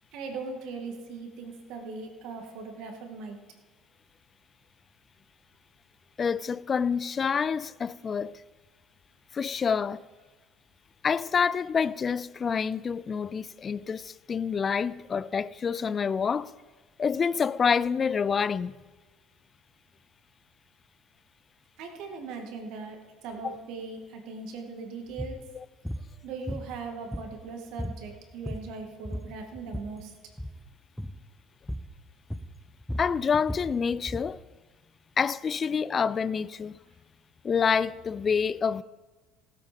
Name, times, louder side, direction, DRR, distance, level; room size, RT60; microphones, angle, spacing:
voice 1, 0.1-3.4 21.8-25.5 26.2-30.1, right 4 dB, 65° right, 2.2 m, -39 dB
voice 2, 6.2-8.4 9.3-10.0 11.0-16.5 17.0-18.8 23.4-23.6 33.0-34.4 35.2-36.8 37.4-38.8, left 6 dB, 35° left, 0.4 m, -27 dB
sound 1, 25.1-25.4 25.8-26.1 26.5-27.5 27.8-28.0 28.3-28.8 29.0-30.0 30.3-30.6 31.0-31.2 31.7-31.9 32.3-34.3, equal, 5° left, 1.0 m, -36 dB
17.0 x 8.5 x 5.3 m
hypercardioid pair, 65°, 0 cm